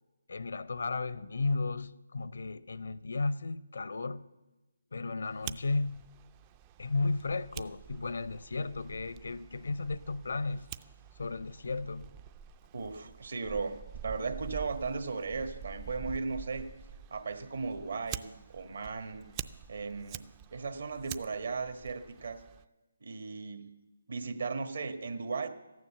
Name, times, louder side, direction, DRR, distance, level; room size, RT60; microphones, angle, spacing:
voice 1, 0.3-4.3 4.9-6.0 6.8-10.6 11.2-12.1, left 3 dB, 70° left, 0.6 m, -34 dB
Fire, 5.2-22.6, right 9 dB, 20° right, 0.4 m, -47 dB
voice 2, 12.7-16.7 17.1-19.3 19.7-20.2 20.5-22.4 23.0-23.7 24.1-25.5, right 4 dB, 65° right, 1.5 m, -36 dB
14.0 x 9.6 x 7.1 m
figure-of-eight pair, 155°, 0 cm